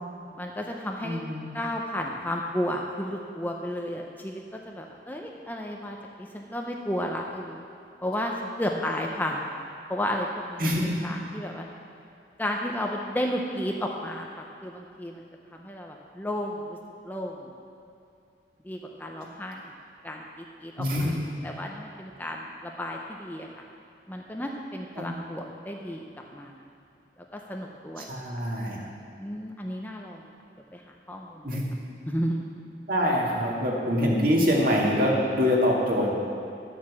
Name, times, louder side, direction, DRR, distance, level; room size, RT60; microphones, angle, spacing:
voice 1, 0.3-1.2 1.5-7.6 8.0-9.6 9.9-11.7 12.4-15.2 15.5-16.8 17.0-17.5 18.6-19.7 20.0-21.1 21.4-23.5 24.1-26.0 26.3-26.7 27.2-28.1 29.2-30.3 30.7-31.6 32.1-32.6, equal, 10° left, 0 dB, 0.6 m, -33 dB
voice 2, 1.0-1.5 10.6-10.9 20.8-21.1 25.0-25.1 28.0-28.8 31.4-31.7 32.9-36.1, equal, 50° right, -3 dB, 2.1 m, -24 dB
11.5 x 7.5 x 7.4 m, 2.5 s
head